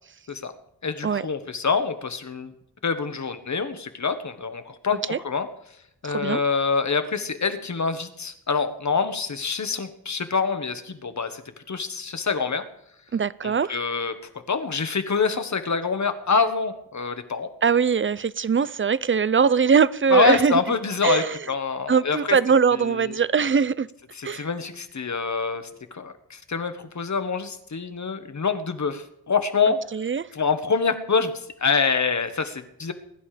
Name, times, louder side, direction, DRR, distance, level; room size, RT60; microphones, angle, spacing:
voice 1, 0.8-2.5 2.8-5.5 6.0-11.4 11.7-12.6 13.4-14.1 14.5-17.5 20.1-22.4 22.7-23.1 24.1-25.6 25.9-29.8 30.3-32.9, left 5 dB, 50° left, 1.5 m, -26 dB
voice 2, 6.0-6.4 13.1-13.8 17.6-20.6 21.0-21.4 21.9-23.9 24.2-24.5 29.9-30.3, right 6 dB, 35° right, 0.5 m, -21 dB
22.0 x 11.0 x 5.1 m
wide cardioid pair, 130°, 37 cm